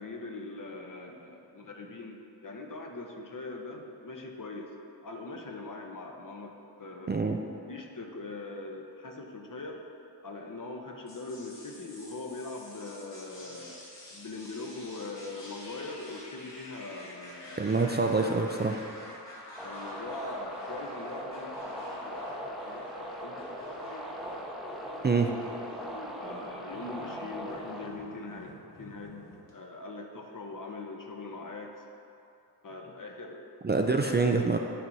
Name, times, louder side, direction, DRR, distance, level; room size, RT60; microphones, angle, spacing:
voice 1, 0.0-4.7 5.0-6.5 6.8-7.2 7.7-9.8 10.2-13.8 14.1-17.7 19.6-23.8 26.2-29.3 29.5-31.8 32.6-33.5 34.4-34.5, left 3 dB, 50° left, 1 dB, 0.9 m, -42 dB
sound 1, 11.1-29.5, left 1 dB, 80° left, 1.4 m, -47 dB
voice 2, 17.6-18.8 25.0-25.3 33.6-34.6, right 4 dB, 25° right, 2 dB, 0.4 m, -26 dB
sound 2, 19.6-27.9, equal, ahead, 0.7 m, -40 dB
11.0 x 4.4 x 2.7 m, 2.7 s
cardioid pair, 45°, 42 cm